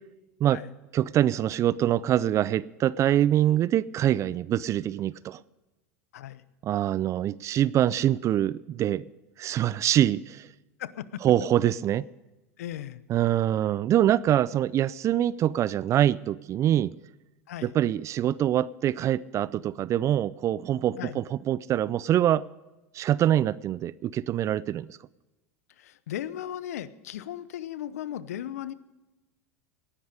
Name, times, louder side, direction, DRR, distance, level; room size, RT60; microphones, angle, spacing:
voice 1, 0.9-5.4 6.6-9.1 9.4-10.5 11.2-12.1 13.1-16.9 17.6-22.5 22.9-25.0, right 11 dB, 40° right, 20 dB, 0.4 m, -24 dB
voice 2, 10.8-11.2 12.6-13.0 17.5-17.7 21.0-21.2 25.8-28.7, left 11 dB, 75° left, 16 dB, 0.8 m, -36 dB
18.5 x 10.5 x 5.0 m, 1.1 s
hypercardioid pair, 90°, 8 cm